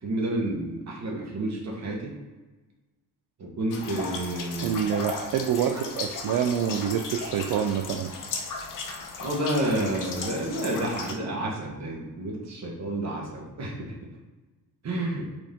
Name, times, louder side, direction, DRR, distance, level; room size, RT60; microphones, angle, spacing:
voice 1, 0.0-2.1 3.4-4.8 9.2-13.9 14.8-15.3, right 1 dB, 45° right, -1 dB, 1.4 m, -30 dB
sound 1, 3.7-11.1, left 4 dB, 55° left, 0.9 m, -36 dB
voice 2, 4.6-8.1, right 8 dB, 65° right, 5 dB, 0.5 m, -27 dB
4.6 x 2.7 x 3.7 m, 1.2 s
cardioid pair, 100°, 37 cm